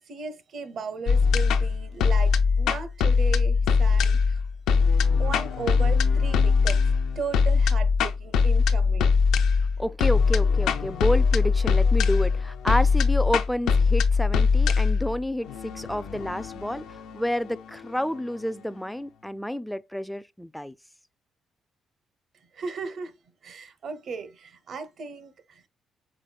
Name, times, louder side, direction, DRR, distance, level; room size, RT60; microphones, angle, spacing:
voice 1, 0.0-4.4 5.2-6.8 7.1-9.2 22.5-23.1 23.4-25.7, right 5 dB, 60° right, 0.8 m, -36 dB
sound 1, 1.1-18.2, left 5 dB, 85° left, 0.5 m, -22 dB
voice 2, 9.8-16.9 17.1-20.7, left 1 dB, 5° left, 0.3 m, -29 dB
5.0 x 4.0 x 2.3 m
cardioid pair, 90°, 0 cm